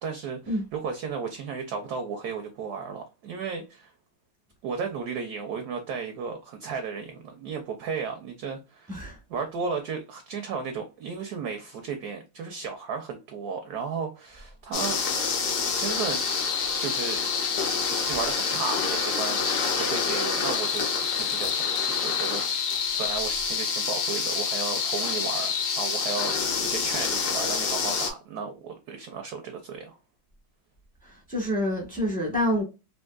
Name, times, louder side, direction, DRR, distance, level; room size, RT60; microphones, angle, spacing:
voice 1, 0.0-3.9 4.6-15.0 15.8-16.2 16.8-17.2 18.0-20.9 21.2-30.0, right 5 dB, 75° right, 0.9 m, -34 dB
sound 1, 14.7-28.1, left 5 dB, 65° left, 1.1 m, -27 dB
voice 2, 31.0-32.6, equal, 10° left, 0.5 m, -27 dB
3.5 x 2.6 x 2.2 m
omnidirectional pair, 2.2 m